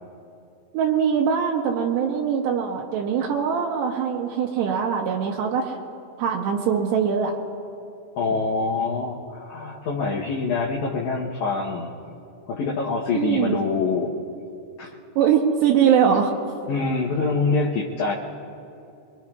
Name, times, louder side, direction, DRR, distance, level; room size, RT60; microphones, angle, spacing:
voice 1, 0.7-5.8 6.2-7.4 13.1-13.6 15.2-16.3, right 7 dB, 85° right, -1 dB, 3.0 m, -22 dB
voice 2, 8.2-11.9 12.5-14.2 14.8-15.0 16.7-18.1, left 4 dB, 75° left, -4 dB, 1.7 m, -25 dB
24.5 x 23.5 x 2.4 m, 2.6 s
omnidirectional pair, 4.8 m